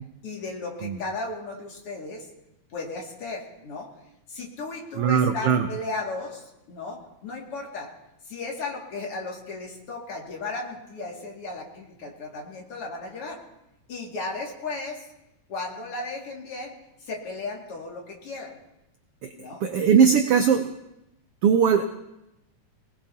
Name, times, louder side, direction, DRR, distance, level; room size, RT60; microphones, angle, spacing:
voice 1, 0.2-2.3 2.7-3.9 4.3-7.9 8.2-13.4 13.9-15.1 15.5-18.6 19.4-19.6, left 3 dB, 50° left, -2 dB, 3.2 m, -35 dB
voice 2, 5.0-5.7 19.6-20.7 21.4-21.8, right 7 dB, 75° right, 6 dB, 1.3 m, -19 dB
22.5 x 19.5 x 2.9 m, 0.88 s
omnidirectional pair, 3.5 m